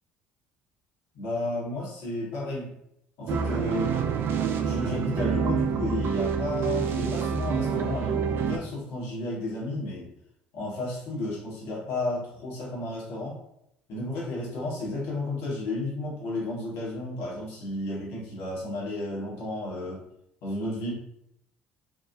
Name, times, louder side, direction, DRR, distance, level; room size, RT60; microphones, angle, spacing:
voice 1, 1.1-2.7 3.2-4.0 4.6-10.1 10.5-13.4 13.9-20.0 20.4-20.9, left 2 dB, 65° left, -4 dB, 1.1 m, -32 dB
sound 1, 3.3-8.6, right 7 dB, 50° right, 0.3 m, -27 dB
2.8 x 2.3 x 2.5 m, 0.77 s
hypercardioid pair, 60°, 5 cm